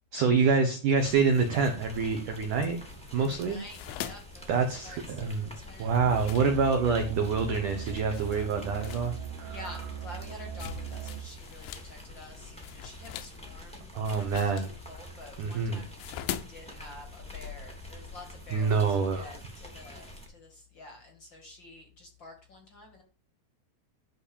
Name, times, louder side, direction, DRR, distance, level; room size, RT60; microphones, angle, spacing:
voice 1, 0.1-2.8 3.1-3.6 4.5-5.5 5.8-9.6 13.9-14.7 15.4-15.8 18.5-19.3, right 5 dB, 85° right, 5 dB, 1.8 m, -26 dB
sound 1, 1.0-20.3, left 1 dB, 5° left, 1.0 m, -47 dB
voice 2, 3.1-5.9 9.1-23.0, left 2 dB, 50° left, 3 dB, 1.4 m, -49 dB
sound 2, 3.7-7.0 7.6-7.8 8.1-11.9 12.2-18.9, left 12 dB, 80° left, 3.2 m, -43 dB
Musical instrument, 5.8-11.3, right 9 dB, 65° right, 2.9 m, -39 dB
12.5 x 4.4 x 7.1 m, 0.35 s
omnidirectional pair, 5.6 m